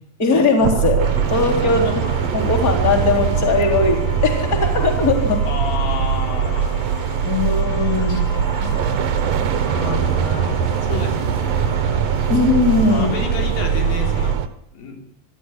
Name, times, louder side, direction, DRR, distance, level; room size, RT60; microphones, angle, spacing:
voice 1, 0.2-1.0 1.3-1.9 2.3-5.4 7.2-8.2 12.3-13.1, left 3 dB, 25° left, 1 dB, 4.1 m, -19 dB
sound 1, 0.6-14.5, right 8 dB, 65° right, 1.7 m, -21 dB
sound 2, 1.0-14.4, left 4 dB, 70° left, 6.1 m, -35 dB
voice 2, 5.4-6.7 7.8-8.8 9.7-11.7 12.9-14.4 14.7-15.0, left 4 dB, 85° left, 2 dB, 5.8 m, -31 dB
24.5 x 14.0 x 9.9 m, 0.80 s
omnidirectional pair, 4.0 m